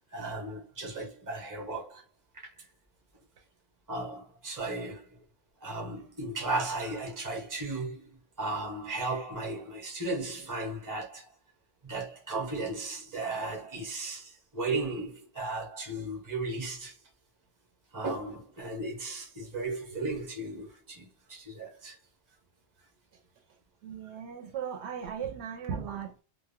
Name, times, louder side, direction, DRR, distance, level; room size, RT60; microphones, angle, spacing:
voice 1, 0.1-2.0 2.3-2.5 3.9-5.1 5.6-8.1 8.4-11.3 11.8-16.9 17.9-22.0, right 2 dB, 20° right, 0.7 m, -35 dB
voice 2, 23.8-26.2, right 7 dB, 75° right, 0.8 m, -37 dB
2.1 x 2.1 x 3.4 m
omnidirectional pair, 1.1 m